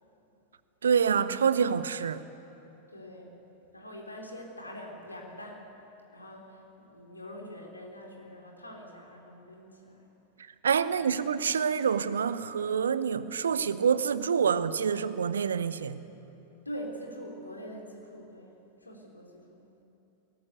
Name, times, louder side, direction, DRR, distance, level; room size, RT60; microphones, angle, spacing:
voice 1, 0.8-2.2 10.6-16.0, right 7 dB, 70° right, 0.8 m, -27 dB
voice 2, 2.9-3.3 3.7-5.7 6.1-10.1 10.9-11.4 16.7-18.5 18.8-19.7, equal, 80° left, 3.6 m, -44 dB
20.5 x 18.5 x 8.3 m
figure-of-eight pair, 90°, 0 cm